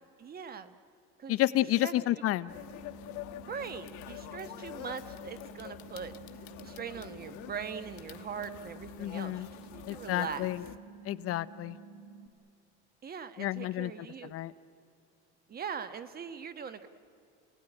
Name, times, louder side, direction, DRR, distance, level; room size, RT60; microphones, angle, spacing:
voice 1, 0.2-0.7 1.2-2.0 3.5-6.1 6.6-10.5 13.0-14.3 15.5-16.9, right 7 dB, 30° right, 12 dB, 1.3 m, -41 dB
voice 2, 1.3-2.5 9.0-9.5 9.9-10.6 11.1-11.8 13.4-13.9 14.3-14.5, left 15 dB, 50° left, 14 dB, 0.7 m, -30 dB
sound 1, 2.3-12.3, right 5 dB, 75° right, 1.7 m, -51 dB
sound 2, 2.5-10.8, left 15 dB, 70° left, 1.2 m, -47 dB
30.0 x 18.0 x 10.0 m, 2.5 s
cardioid pair, 130°, 30 cm